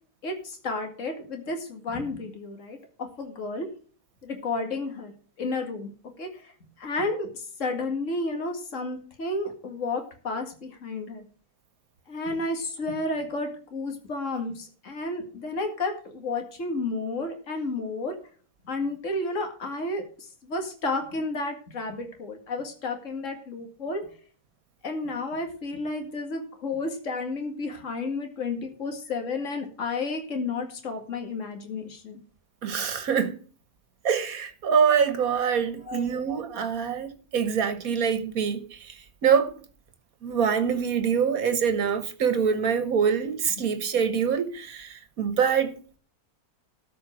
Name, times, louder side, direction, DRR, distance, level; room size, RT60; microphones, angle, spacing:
voice 1, 0.2-3.7 4.2-5.1 5.4-5.9 6.2-6.5 6.8-11.2 12.1-18.2 18.6-24.1 24.8-32.2 35.9-36.1, left 3 dB, 50° left, 2.4 m, -32 dB
voice 2, 32.6-33.4 34.0-38.6 39.2-39.5 40.2-45.7, right 7 dB, 65° right, 1.8 m, -25 dB
13.0 x 5.6 x 6.2 m
omnidirectional pair, 1.6 m